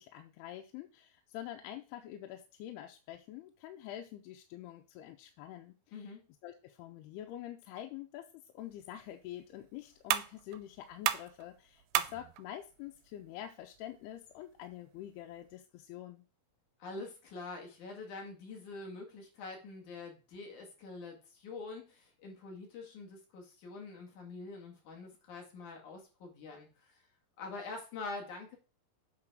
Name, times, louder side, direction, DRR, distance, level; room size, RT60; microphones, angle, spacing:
voice 1, 0.0-6.1 6.4-8.3 8.5-16.2, left 12 dB, 90° left, 4 dB, 2.7 m, -46 dB
sound 1, 8.6-15.6, right 13 dB, 80° right, 2.2 m, -39 dB
voice 2, 16.8-27.0 27.4-28.6, left 3 dB, 55° left, 0 dB, 3.1 m, -45 dB
8.8 x 4.0 x 6.1 m, 0.34 s
omnidirectional pair, 4.6 m